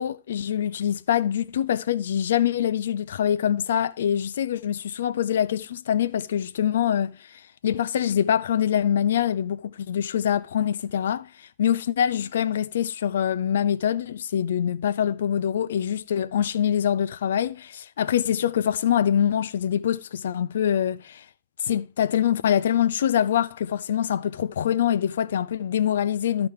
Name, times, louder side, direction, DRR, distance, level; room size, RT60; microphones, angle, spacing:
voice 1, 0.0-21.2 21.6-26.5, left 9 dB, 65° left, 0.4 m, -24 dB
13.5 x 4.9 x 3.4 m
figure-of-eight pair, 90°, 0 cm